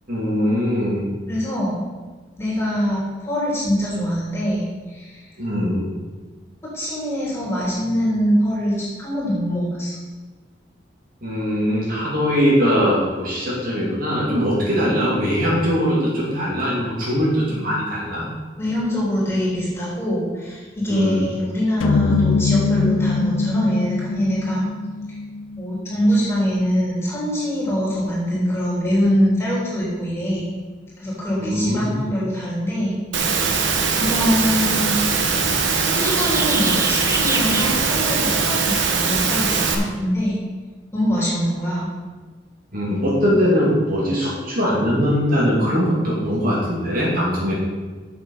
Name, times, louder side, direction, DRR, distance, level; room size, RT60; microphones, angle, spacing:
voice 1, 0.1-1.0 5.4-5.9 11.2-18.3 20.9-21.2 31.4-32.0 42.7-47.5, equal, 50° right, -5 dB, 2.8 m, -21 dB
voice 2, 1.3-1.9 2.4-5.2 6.7-10.0 18.6-24.7 25.5-30.5 31.0-33.4 34.0-35.0 35.8-40.4 40.9-41.9, equal, 15° left, -7 dB, 3.3 m, -23 dB
sound 1, 21.8-26.1, left 4 dB, 85° left, 0.4 m, -22 dB
Engine / Mechanisms, 33.1-39.8, right 5 dB, 75° right, 1.1 m, -21 dB
sound 2, 34.4-39.7, right 2 dB, 15° right, 0.9 m, -31 dB
7.6 x 7.4 x 5.6 m, 1.3 s
head